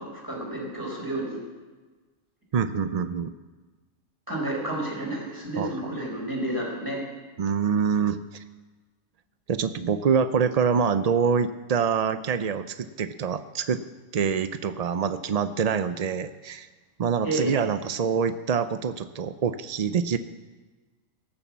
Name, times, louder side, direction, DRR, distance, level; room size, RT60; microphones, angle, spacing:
voice 1, 0.0-1.4 4.3-7.0 17.2-17.5, right 1 dB, 15° right, -2 dB, 4.2 m, -30 dB
voice 2, 2.5-3.3 5.6-5.7 7.4-8.4 9.5-13.8 14.1-16.7 17.0-20.2, right 6 dB, 80° right, 11 dB, 0.3 m, -25 dB
18.0 x 7.1 x 7.3 m, 1.3 s
omnidirectional pair, 1.4 m